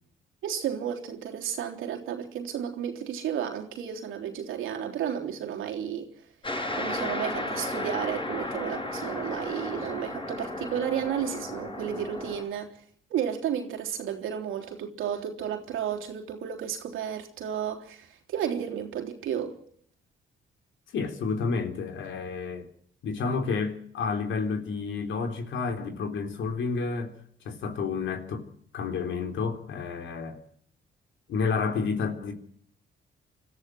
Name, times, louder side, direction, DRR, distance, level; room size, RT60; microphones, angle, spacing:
voice 1, 0.4-6.1 6.8-12.7 13.1-19.6, right 9 dB, 85° right, 3.5 m, -32 dB
sound 1, 6.4-12.4, left 1 dB, 25° left, 7.1 m, -34 dB
voice 2, 20.9-22.7 23.0-27.1 27.5-28.5 28.7-30.4 31.3-32.3, left 4 dB, 75° left, 3.7 m, -30 dB
25.5 x 14.5 x 7.9 m
cardioid pair, 90°, 20 cm